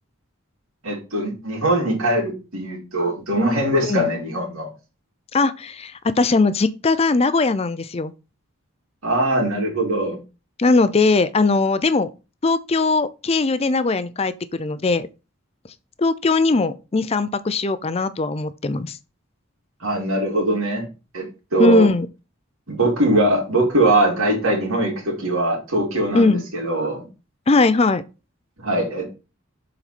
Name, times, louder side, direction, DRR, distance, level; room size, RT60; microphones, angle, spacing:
voice 1, 0.8-4.7 9.0-10.2 19.8-20.8 21.1-21.2 21.5-21.9 22.7-27.0 28.6-29.2, right 1 dB, 90° right, 2.7 m, -21 dB
voice 2, 5.3-8.1 10.6-12.1 12.4-15.1 16.0-19.0 21.6-22.1 26.1-26.4 27.5-28.0, left 3 dB, 30° left, 0.4 m, -19 dB
6.9 x 4.2 x 4.2 m
head